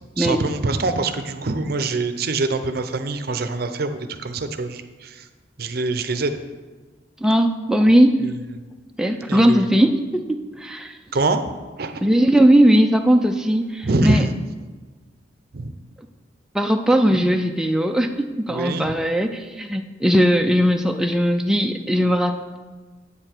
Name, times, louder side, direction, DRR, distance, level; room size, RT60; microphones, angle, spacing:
voice 1, 0.2-5.3 5.6-6.4 8.2-8.3 9.3-9.7 11.1-11.4 11.8-12.0 13.8-14.3 15.5-15.7 17.1-17.2 18.5-19.0, right 3 dB, 55° right, 9 dB, 0.6 m, -24 dB
voice 2, 7.2-8.3 9.0-11.0 12.0-14.2 16.5-22.6, equal, 5° right, 4 dB, 0.4 m, -18 dB
8.6 x 7.0 x 4.4 m, 1.3 s
head